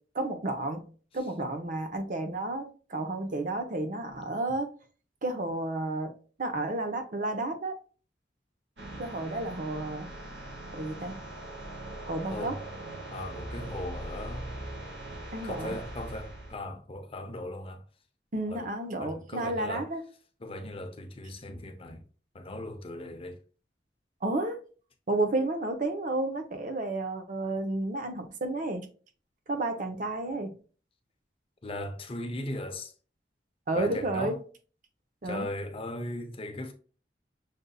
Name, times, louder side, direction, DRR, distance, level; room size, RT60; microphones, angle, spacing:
voice 1, 0.1-0.9 1.1-4.7 5.2-6.1 6.4-7.8 9.0-10.1 10.7-11.2 12.1-12.5 15.3-15.8 18.3-20.0 24.2-24.6 25.1-28.9 29.5-30.5 33.7-34.3 35.2-35.5, right 2 dB, 50° right, 0.7 m, -31 dB
sound 1, 8.8-16.6, right 1 dB, 75° right, 1.1 m, -41 dB
voice 2, 12.3-12.6 13.1-14.5 15.4-17.8 18.5-18.7 19.0-19.9 20.4-22.0 22.3-23.4 31.6-32.9 33.7-34.4 35.2-36.7, left 1 dB, 35° left, 0.6 m, -38 dB
6.5 x 2.6 x 2.3 m
head